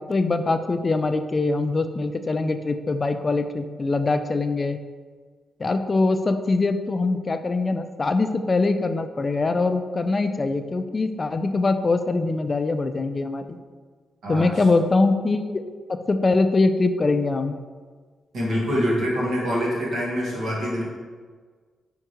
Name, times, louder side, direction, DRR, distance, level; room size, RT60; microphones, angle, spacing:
voice 1, 0.1-4.8 5.6-13.6 14.3-15.6 15.9-17.5, left 3 dB, 40° left, 9 dB, 0.3 m, -23 dB
voice 2, 18.3-20.8, equal, 75° right, -5 dB, 1.4 m, -25 dB
4.7 x 3.5 x 2.9 m, 1.5 s
cardioid pair, 70°, 0 cm